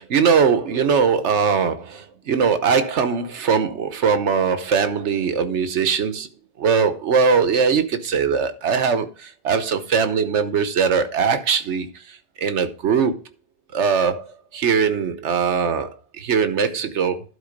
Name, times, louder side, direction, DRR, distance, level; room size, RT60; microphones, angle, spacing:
voice 1, 0.0-6.3 6.6-13.2 13.7-14.3 14.5-17.2, right 6 dB, 90° right, 1.3 m, -21 dB
11.5 x 4.7 x 5.2 m
omnidirectional pair, 1.1 m